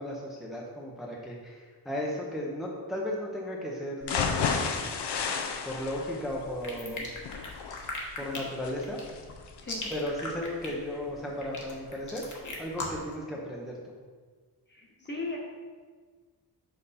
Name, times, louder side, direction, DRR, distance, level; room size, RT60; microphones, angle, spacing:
voice 1, 0.0-4.6 5.7-7.1 8.2-9.0 9.9-12.2 12.6-13.8, left 1 dB, ahead, -2 dB, 0.6 m, -35 dB
sound 1, 4.0-12.0 12.4-12.5 12.9-13.0, left 5 dB, 80° left, 0.7 m, -34 dB
sound 2, 6.6-13.1, left 3 dB, 50° left, 1.2 m, -38 dB
voice 2, 14.7-15.4, left 3 dB, 25° left, -2 dB, 1.1 m, -38 dB
5.5 x 5.3 x 4.1 m, 1.5 s
wide cardioid pair, 150°, 40 cm